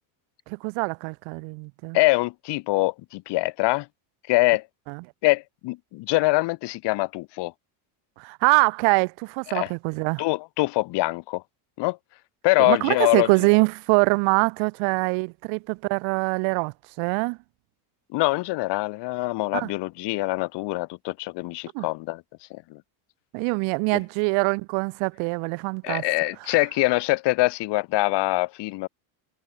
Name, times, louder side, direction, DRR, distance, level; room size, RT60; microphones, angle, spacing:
voice 1, 0.5-2.0 4.9-5.0 8.2-10.2 12.6-17.4 19.5-19.7 21.7-21.9 23.3-26.0, right 33 dB, 75° right, 0.8 m, -24 dB
voice 2, 1.9-3.9 4.3-4.6 5.2-7.5 9.5-9.7 10.2-11.4 11.8-12.0 12.4-13.3 18.1-22.2 22.5-22.8 25.8-28.9, left 21 dB, 60° left, 1.5 m, -24 dB
cardioid pair, 150°, 47 cm